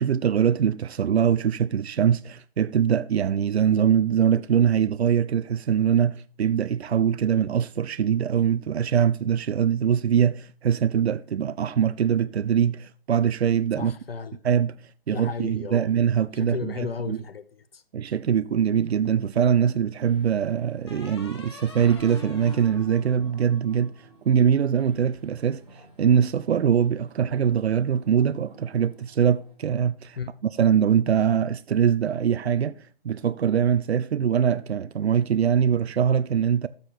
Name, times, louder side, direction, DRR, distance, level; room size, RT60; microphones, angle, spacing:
voice 1, 0.0-13.9 14.4-14.8 15.1-16.7 17.1-17.2 17.9-30.2 30.6-36.7, right 8 dB, 90° right, 0.5 m, -23 dB
voice 2, 13.8-14.4 15.1-15.9 16.3-17.8 30.2-30.3, left 6 dB, 70° left, 0.7 m, -34 dB
sound 1, 19.0-19.9 20.9-24.2, left 3 dB, 25° left, 1.5 m, -43 dB
sound 2, 20.0-29.5, right 1 dB, 5° right, 1.4 m, -51 dB
13.0 x 6.7 x 4.2 m
hypercardioid pair, 170°, 31 cm